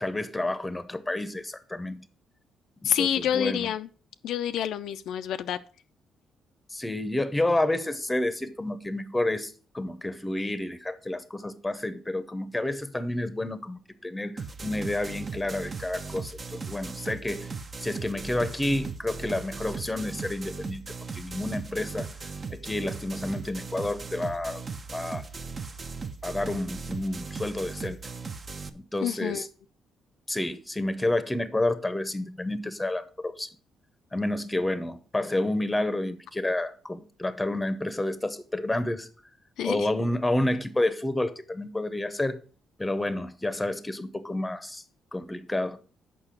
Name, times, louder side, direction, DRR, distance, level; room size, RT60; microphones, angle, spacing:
voice 1, 0.0-2.0 2.8-3.7 6.7-17.5 17.8-20.8 21.1-22.1 22.5-24.6 24.9-25.2 26.2-28.0 28.7-29.5 30.3-33.5 34.1-39.1 39.6-42.4 42.8-44.8 45.1-45.8, left 1 dB, 10° left, 0.8 m, -30 dB
voice 2, 2.8-3.9 4.2-5.6 29.0-29.5 39.6-39.9, left 10 dB, 80° left, 0.4 m, -28 dB
sound 1, 14.4-28.7, right 4 dB, 35° right, 0.8 m, -38 dB
6.8 x 5.4 x 5.9 m
cardioid pair, 90°, 0 cm